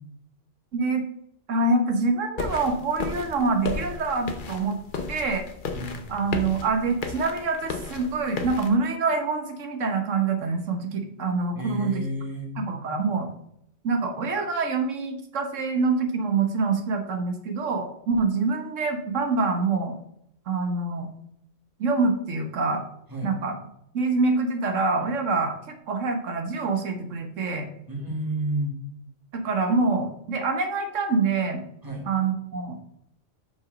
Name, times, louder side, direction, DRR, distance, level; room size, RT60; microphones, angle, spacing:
voice 1, 0.7-1.0 1.5-4.8 5.1-5.4 6.1-12.0 12.6-13.3 13.8-20.0 20.5-21.1 21.8-22.8 23.2-23.5 23.9-25.5 25.9-27.7 29.3-31.6 32.1-32.8, right 3 dB, 85° right, 6 dB, 1.4 m, -25 dB
sound 1, 2.4-8.7, left 4 dB, 45° left, 1.0 m, -34 dB
voice 2, 5.7-6.3 11.5-12.5 23.1-23.3 27.9-28.8 31.8-32.1, right 1 dB, 15° right, 0 dB, 1.8 m, -31 dB
6.3 x 5.7 x 5.0 m, 0.77 s
omnidirectional pair, 1.3 m